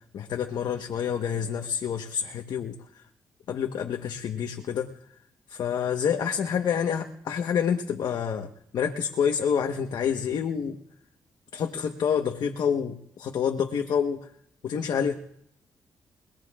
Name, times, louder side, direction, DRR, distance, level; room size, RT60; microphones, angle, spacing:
voice 1, 0.1-2.8 3.5-4.9 5.5-8.5 8.7-10.8 11.5-14.3 14.6-15.1, left 7 dB, 75° left, 4 dB, 1.2 m, -28 dB
30.0 x 19.5 x 2.5 m, 0.72 s
cardioid pair, 65°, 7 cm